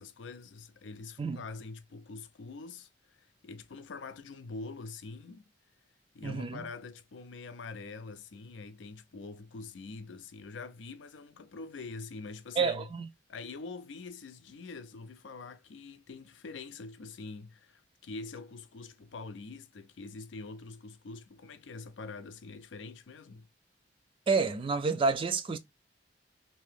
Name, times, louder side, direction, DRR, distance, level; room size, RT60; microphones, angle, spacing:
voice 1, 0.0-5.5 6.1-12.9 13.3-23.5, left 3 dB, 85° left, 0.5 m, -45 dB
voice 2, 6.2-6.6 12.6-13.1 24.3-25.6, right 4 dB, 30° right, 0.4 m, -29 dB
2.8 x 2.7 x 3.4 m
head